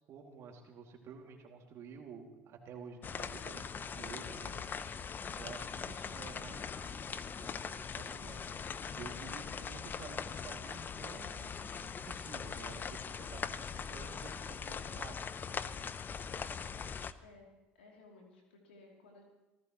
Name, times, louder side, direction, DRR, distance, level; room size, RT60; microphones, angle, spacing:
voice 1, 0.1-4.6 5.3-8.5 9.0-11.5 11.8-15.1, right 5 dB, 55° right, 2 dB, 2.5 m, -51 dB
sound 1, 3.0-17.1, left 6 dB, 35° left, 0.8 m, -41 dB
voice 2, 16.3-16.6 17.2-19.2, left 3 dB, 90° left, 0 dB, 3.0 m, -58 dB
25.5 x 15.0 x 3.1 m, 1.1 s
hypercardioid pair, 70°, 6 cm